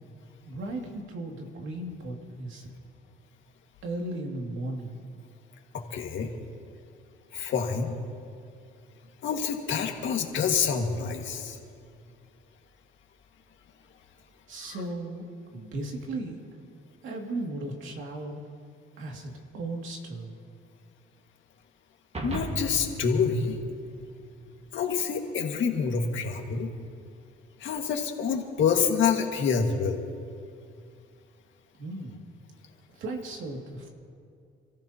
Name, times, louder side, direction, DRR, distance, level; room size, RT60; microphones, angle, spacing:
voice 1, 0.4-2.7 3.8-4.9 14.5-15.2 15.5-16.6 16.9-18.4 19.0-20.3 31.8-32.2 32.9-33.9, right 2 dB, 80° right, 1 dB, 2.4 m, -36 dB
voice 2, 5.7-6.3 7.3-7.9 9.2-11.6 22.2-23.6 24.7-26.7 27.6-30.0, left 6 dB, 75° left, 2 dB, 1.9 m, -27 dB
sound 1, 22.1-24.6, right 2 dB, 30° right, 1.8 m, -37 dB
29.0 x 14.5 x 2.9 m, 2.3 s
cardioid pair, 90°, 20 cm